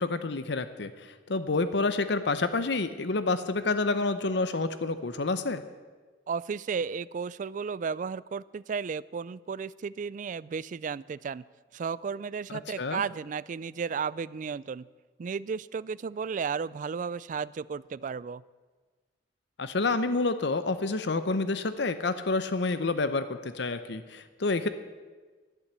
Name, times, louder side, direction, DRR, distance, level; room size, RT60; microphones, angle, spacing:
voice 1, 0.0-5.6 12.8-13.0 19.6-24.7, left 3 dB, 65° left, 12 dB, 0.7 m, -28 dB
voice 2, 6.3-11.4 11.7-14.9 15.2-18.4, right 6 dB, 45° right, 20 dB, 0.3 m, -34 dB
12.0 x 11.0 x 8.1 m, 1.4 s
head